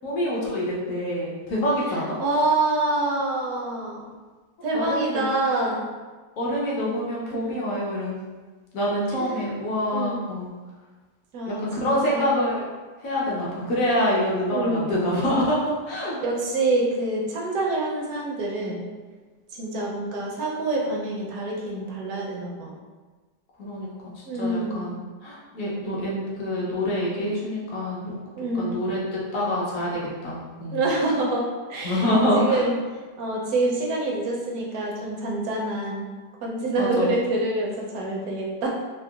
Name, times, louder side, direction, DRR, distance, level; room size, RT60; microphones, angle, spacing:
voice 1, 0.0-2.2 4.7-5.3 6.4-8.2 8.7-10.5 11.5-12.7 13.0-16.2 23.6-28.1 28.5-30.9 31.8-32.7 36.8-37.1, equal, 65° left, -5 dB, 1.0 m, -26 dB
voice 2, 2.2-4.1 4.6-5.9 7.3-7.6 9.1-9.5 9.9-10.2 11.3-12.2 14.5-14.9 16.2-18.9 19.5-22.7 24.3-24.9 28.4-28.8 30.7-32.1 32.4-32.7 33.2-36.1 36.4-38.7, right 2 dB, 70° right, -3 dB, 1.0 m, -26 dB
3.7 x 2.1 x 2.3 m, 1.3 s
omnidirectional pair, 1.8 m